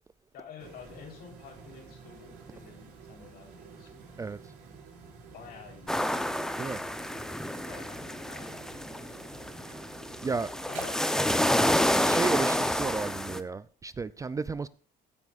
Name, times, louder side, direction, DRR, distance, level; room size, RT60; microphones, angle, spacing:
voice 1, 0.3-4.0 5.3-6.0 7.7-9.0 10.7-11.0, left 6 dB, 70° left, 3.8 m, -49 dB
sound 1, 0.6-11.0, right 5 dB, 85° right, 5.1 m, -50 dB
sound 2, 5.9-13.4, left 1 dB, 5° left, 0.7 m, -29 dB
voice 2, 10.2-10.5 12.0-14.7, right 4 dB, 20° right, 0.3 m, -33 dB
15.0 x 9.5 x 2.5 m
cardioid pair, 110°, 17 cm